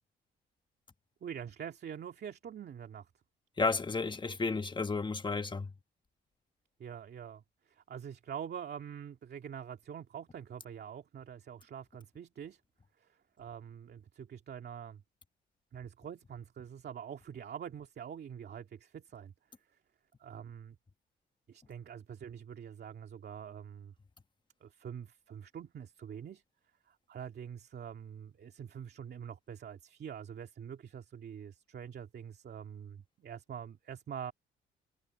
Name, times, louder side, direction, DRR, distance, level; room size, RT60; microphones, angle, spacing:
voice 1, 1.2-3.1 6.8-12.6 13.0-15.0 15.7-19.3 20.2-20.8 21.5-23.9 24.6-26.4 26.9-34.3, right 8 dB, 55° right, 2.4 m, -45 dB
voice 2, 3.6-5.7, left 4 dB, 25° left, 1.5 m, -32 dB
cardioid pair, 90°, 20 cm